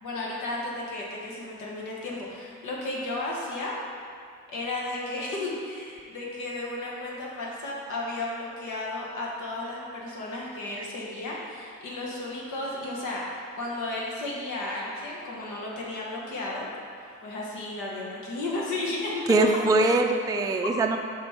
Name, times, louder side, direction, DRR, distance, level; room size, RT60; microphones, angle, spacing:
voice 1, 0.0-3.7 4.5-16.7 17.0-19.3 19.5-19.6 20.6-20.7, left 2 dB, 85° left, -4 dB, 1.4 m, -34 dB
voice 2, 19.3-21.0, right 2 dB, 10° right, 3 dB, 0.4 m, -22 dB
5.3 x 5.2 x 4.4 m, 2.3 s
cardioid pair, 90°, 30 cm